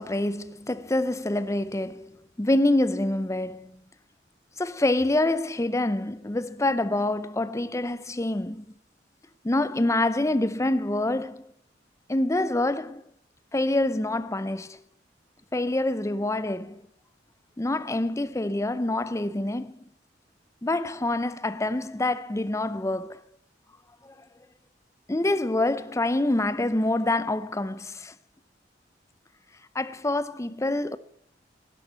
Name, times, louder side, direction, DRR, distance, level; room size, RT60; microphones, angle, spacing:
voice 1, 0.0-3.8 4.6-8.6 9.4-11.5 12.1-13.0 13.5-14.8 15.5-16.8 17.6-19.8 20.6-23.2 24.0-24.2 25.1-28.1 29.7-31.0, left 2 dB, 15° left, 0.6 m, -26 dB
11.5 x 11.0 x 7.9 m
head